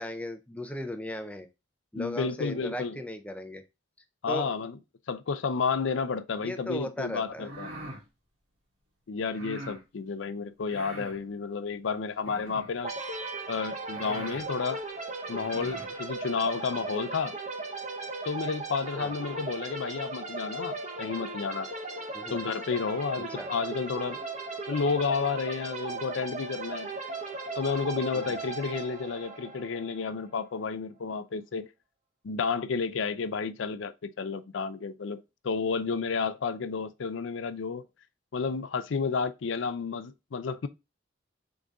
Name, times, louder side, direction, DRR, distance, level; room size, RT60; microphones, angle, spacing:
voice 1, 0.0-1.5 1.9-3.6 4.3-4.5 6.4-7.5 18.9-19.1 22.1-22.4 23.4-23.5 28.1-28.4, left 1 dB, 5° left, 0.5 m, -37 dB
voice 2, 2.0-3.0 4.2-4.8 5.1-7.7 9.1-12.9 13.5-14.8 15.3-17.4 18.2-21.7 22.3-24.2 24.7-26.9 27.6-31.7 32.2-37.8 38.3-40.7, left 5 dB, 80° left, 0.5 m, -31 dB
sound 1, 7.3-8.0 9.3-9.8 10.6-11.2 12.2-12.8 13.5-13.6 13.9-14.5 15.3-15.9, right 1 dB, 70° right, 2.1 m, -43 dB
sound 2, 12.8-30.4, right 3 dB, 40° right, 0.8 m, -37 dB
3.9 x 3.8 x 3.5 m
head